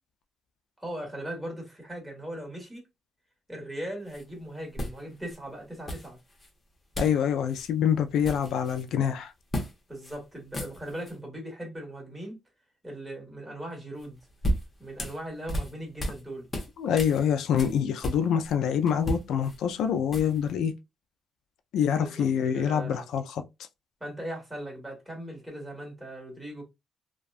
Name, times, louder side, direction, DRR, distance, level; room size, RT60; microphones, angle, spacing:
voice 1, 0.8-2.9 3.5-6.2 9.9-12.4 12.8-14.2 14.8-16.5 22.0-23.0 24.0-26.6, right 1 dB, 10° right, 1.4 m, -39 dB
sound 1, 4.1-4.2 4.8-5.4 5.9-6.5 6.9-7.2 7.5-7.7 8.0-8.9 9.5-9.7 10.0-10.2 10.4-11.1 14.0-16.2 16.5-18.5 18.9-20.5, equal, 25° left, 0.8 m, -34 dB
voice 2, 7.0-9.3 16.8-20.7 21.7-23.4, left 8 dB, 80° left, 0.3 m, -26 dB
2.4 x 2.2 x 2.3 m
cardioid pair, 90°, 0 cm